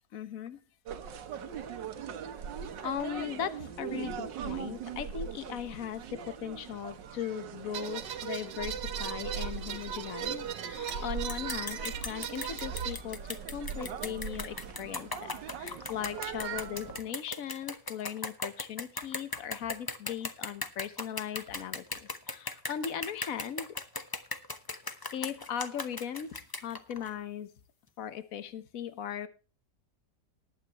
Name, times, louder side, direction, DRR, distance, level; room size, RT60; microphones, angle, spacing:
voice 1, 0.1-0.6 2.8-23.7 24.9-27.5 28.0-29.3, left 9 dB, 55° left, 12 dB, 1.4 m, -38 dB
sound 1, 0.9-17.0, right 7 dB, 85° right, 1.7 m, -40 dB
sound 2, 7.7-12.9, right 8 dB, 70° right, 1.7 m, -38 dB
sound 3, 10.9-11.0 11.3-27.1, left 3 dB, 25° left, 0.4 m, -38 dB
19.5 x 9.0 x 3.0 m, 0.33 s
omnidirectional pair, 1.9 m